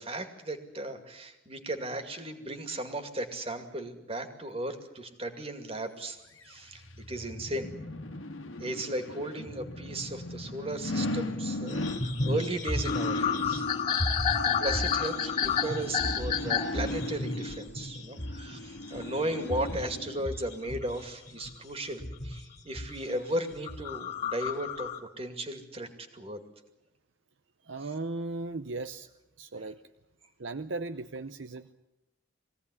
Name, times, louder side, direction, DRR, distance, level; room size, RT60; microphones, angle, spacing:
voice 1, 0.0-6.2 6.4-6.8 7.1-7.7 8.6-13.7 14.1-14.3 14.6-24.9 25.2-26.4 27.8-27.9, right 1 dB, 30° right, 7 dB, 2.3 m, -36 dB
sound 1, 6.4-20.3 20.7-20.8, left 1 dB, 80° left, 1.7 m, -37 dB
sound 2, 11.7-21.6 22.0-23.0 23.5-25.0, left 5 dB, 35° left, 2.8 m, -31 dB
voice 2, 27.7-29.1 29.4-29.8 30.4-31.7, right 3 dB, 65° right, 10 dB, 0.7 m, -37 dB
22.5 x 17.0 x 9.8 m, 0.93 s
head